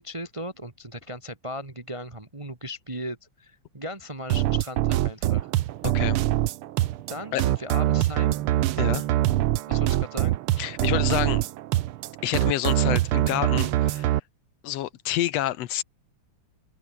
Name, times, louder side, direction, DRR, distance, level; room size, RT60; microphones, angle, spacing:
voice 1, 0.0-5.5 7.1-8.4 9.7-10.4, equal, 55° right, 0.3 m, -37 dB
sound 1, 4.3-14.2, right 14 dB, 80° right, 1.2 m, -24 dB
voice 2, 5.8-6.2 7.3-7.4 8.8-9.1 10.6-11.4 12.2-14.2 14.6-15.8, left 13 dB, 70° left, 1.9 m, -28 dB
open air
omnidirectional pair, 3.4 m